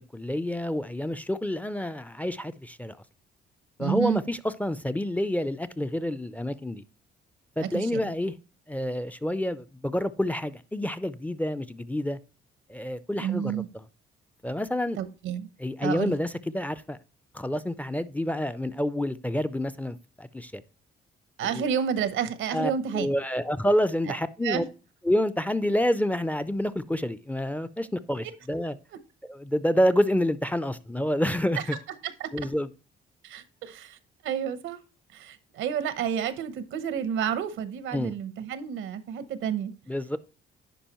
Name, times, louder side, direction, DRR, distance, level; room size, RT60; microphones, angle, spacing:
voice 1, 0.1-3.0 3.8-6.8 7.6-8.3 8.7-12.2 12.7-13.6 14.4-15.0 15.6-17.0 17.3-20.6 21.4-21.7 22.5-24.6 25.0-28.8 29.2-31.6 32.3-32.7 37.9-38.1 39.9-40.2, left 1 dB, 5° left, 0.4 m, -28 dB
voice 2, 3.8-4.2 7.6-8.1 13.2-13.7 15.0-15.5 15.8-16.1 21.4-23.1 24.1-24.2 24.4-24.7 32.0-32.3 33.2-34.0 34.2-34.8 35.1-39.7, right 8 dB, 85° right, 0.8 m, -30 dB
10.0 x 4.9 x 2.9 m
cardioid pair, 90°, 20 cm